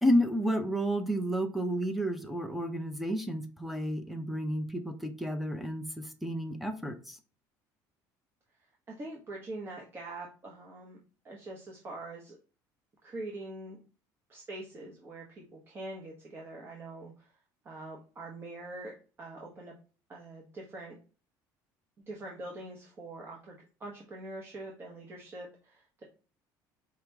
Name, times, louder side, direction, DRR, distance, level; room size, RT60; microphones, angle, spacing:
voice 1, 0.0-7.2, equal, ahead, 6 dB, 0.6 m, -31 dB
voice 2, 8.9-11.0 11.2-12.4 13.0-13.8 14.3-17.3 17.6-18.9 19.2-19.7 20.1-21.0 22.1-26.0, right 2 dB, 30° right, -2 dB, 1.0 m, -44 dB
4.8 x 2.9 x 3.4 m, 0.36 s
cardioid pair, 130°, 8 cm